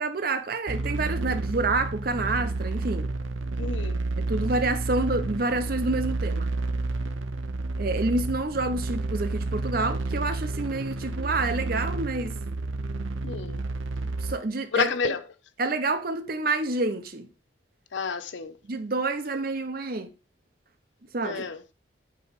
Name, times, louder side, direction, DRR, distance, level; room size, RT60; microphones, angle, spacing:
voice 1, 0.0-3.1 4.2-6.5 7.8-12.4 14.2-15.1 15.6-17.3 18.6-20.1 21.1-21.5, right 3 dB, 50° right, 0.7 m, -28 dB
sound 1, 0.7-14.4, right 2 dB, 80° right, 0.7 m, -30 dB
voice 2, 3.6-4.0 13.2-13.6 14.7-15.2 17.9-18.6 21.2-21.6, left 5 dB, 70° left, 0.6 m, -29 dB
8.2 x 3.1 x 4.7 m
head